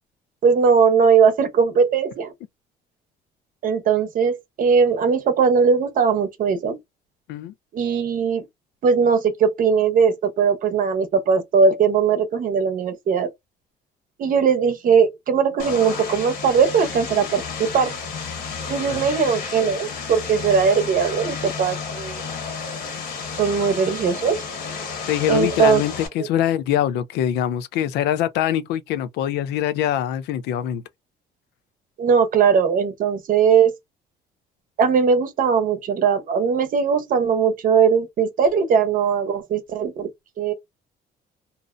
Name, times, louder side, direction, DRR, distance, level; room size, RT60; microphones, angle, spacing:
voice 1, 0.4-2.3 3.6-6.8 7.7-8.5 8.8-13.3 14.2-17.9 18.7-22.2 23.4-24.4 25.3-25.8 26.2-26.3 32.0-33.7 34.8-40.1 40.4-40.5, right 6 dB, 55° right, 0.8 m, -19 dB
Vehicle, 15.6-26.1, left 5 dB, 65° left, 1.3 m, -32 dB
voice 2, 25.1-30.8, left 11 dB, 80° left, 0.4 m, -23 dB
2.6 x 2.0 x 2.4 m
cardioid pair, 110°, 17 cm